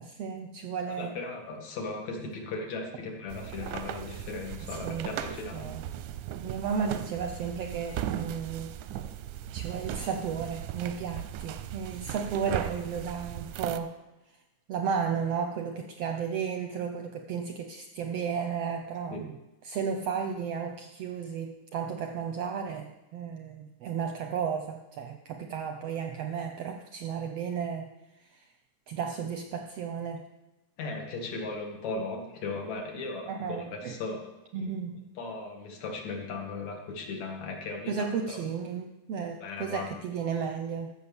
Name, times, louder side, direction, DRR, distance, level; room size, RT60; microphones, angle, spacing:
voice 1, 0.0-1.2 4.7-5.1 5.5-5.8 6.4-8.8 9.5-13.9 14.7-19.3 19.6-27.9 28.2-28.4 28.9-30.2 33.3-33.9 34.5-35.0 37.9-40.9, right 6 dB, 75° right, 5 dB, 1.5 m, -33 dB
voice 2, 1.0-5.7 19.1-19.2 30.8-34.2 34.6-34.7 35.2-38.4 39.4-39.9, left 3 dB, 65° left, 2 dB, 3.0 m, -37 dB
sound 1, 3.3-13.8, right 11 dB, 90° right, 2.2 m, -37 dB
13.5 x 7.1 x 7.0 m, 1.0 s
omnidirectional pair, 3.6 m